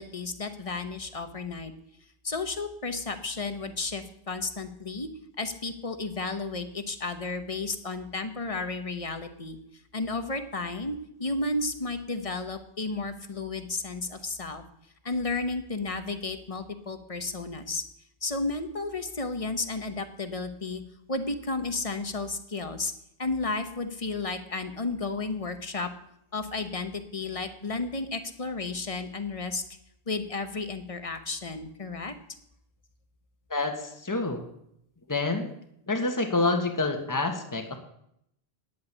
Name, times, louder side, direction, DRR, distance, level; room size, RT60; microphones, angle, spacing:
voice 1, 0.0-1.7 2.2-5.1 5.4-9.6 9.9-14.6 15.0-17.8 18.2-20.8 21.1-22.9 23.2-25.9 26.3-29.6 30.1-32.1, left 3 dB, 35° left, 9 dB, 1.1 m, -32 dB
voice 2, 33.5-34.4 35.1-35.5 35.9-37.8, left 3 dB, 20° left, 4 dB, 1.4 m, -27 dB
10.0 x 8.8 x 8.3 m, 0.75 s
omnidirectional pair, 1.1 m